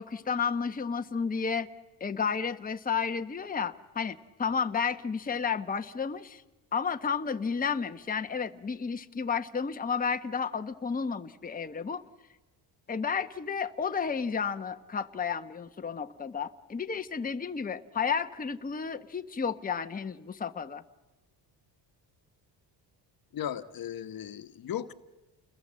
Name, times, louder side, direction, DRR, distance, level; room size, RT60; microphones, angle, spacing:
voice 1, 0.0-1.7 2.0-6.4 6.7-12.0 12.9-20.8, left 6 dB, 20° left, 1.1 m, -32 dB
voice 2, 23.3-24.9, left 10 dB, 55° left, 1.3 m, -36 dB
30.0 x 21.0 x 7.6 m
cardioid pair, 95°, 42 cm